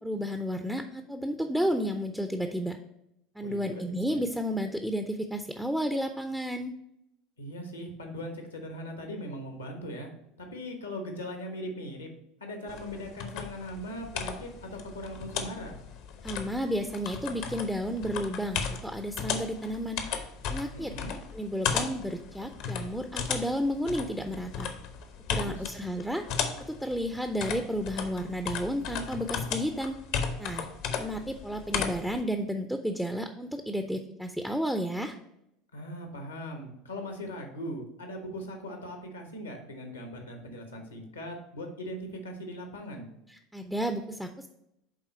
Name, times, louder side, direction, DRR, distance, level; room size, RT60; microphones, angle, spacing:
voice 1, 0.0-2.8 3.4-6.7 16.2-20.0 20.5-20.9 21.3-24.7 25.3-26.3 26.7-30.7 31.0-35.2 43.3-44.5, equal, ahead, 6 dB, 0.5 m, -32 dB
voice 2, 3.4-3.8 4.1-4.2 7.4-10.1 10.4-12.1 12.4-15.8 20.7-21.1 25.4-25.7 35.7-43.1, equal, 80° left, 4 dB, 1.2 m, -39 dB
sound 1, 12.7-32.2, left 6 dB, 55° left, 0.8 m, -36 dB
9.0 x 3.7 x 4.1 m, 0.82 s
figure-of-eight pair, 70°, 0 cm